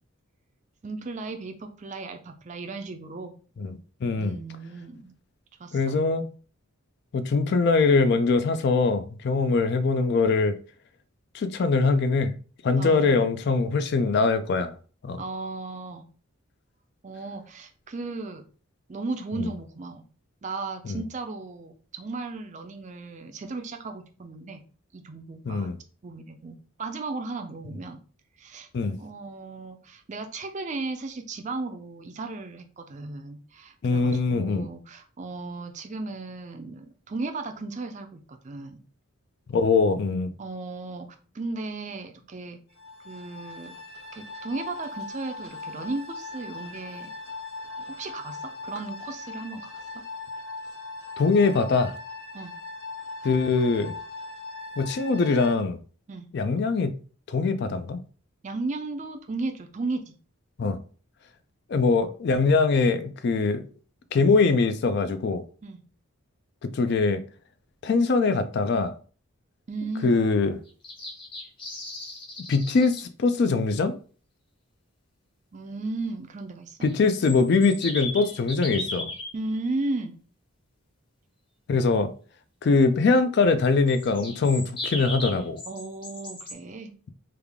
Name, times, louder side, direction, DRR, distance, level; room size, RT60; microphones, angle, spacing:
voice 1, 0.8-3.3 4.2-5.1 5.6-6.0 12.8-13.2 15.2-16.1 17.0-18.4 18.9-20.0 20.4-24.6 24.9-25.7 26.0-28.0 28.4-28.7 29.0-38.8 40.4-42.6 43.0-43.7 44.1-47.1 47.8-48.4 48.6-49.8 52.3-52.5 56.1-56.3 58.4-60.2 65.6-65.8 69.7-70.2 75.5-76.9 79.3-80.2 85.7-86.9, right 3 dB, 35° right, 0.4 m, -35 dB
voice 2, 3.6-4.4 5.7-6.3 7.1-10.6 11.3-12.3 12.6-14.7 15.0-15.2 19.4-19.5 20.8-21.0 25.5-25.8 28.7-29.0 33.8-34.7 39.5-40.3 51.2-51.9 53.2-53.9 54.8-55.8 56.3-56.9 57.3-58.0 60.6-60.8 61.7-63.6 64.1-65.4 66.6-67.2 67.8-68.9 70.0-70.5 72.5-74.0 76.8-79.1 81.7-82.1 82.6-85.6, left 4 dB, 50° left, 0.3 m, -22 dB
sound 1, 42.8-55.6, left 3 dB, 80° left, 1.2 m, -39 dB
sound 2, 70.7-73.0 76.8-79.3 83.9-86.5, left 2 dB, 25° left, 0.8 m, -36 dB
3.3 x 2.3 x 3.4 m
head